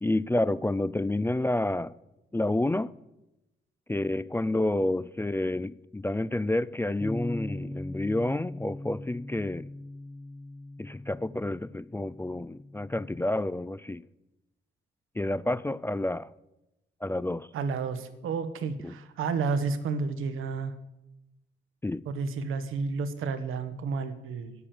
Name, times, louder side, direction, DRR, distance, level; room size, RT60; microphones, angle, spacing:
voice 1, 0.0-1.9 2.3-2.9 3.9-9.7 10.8-14.0 15.2-16.3 17.0-17.5 18.8-18.9 21.8-22.1, left 1 dB, 10° left, 0.3 m, -29 dB
Bass guitar, 7.0-13.3, left 1 dB, 5° right, 0.7 m, -40 dB
voice 2, 17.5-20.7 22.1-24.5, right 4 dB, 85° right, 1.2 m, -31 dB
8.5 x 8.4 x 7.2 m
cardioid pair, 65°, 21 cm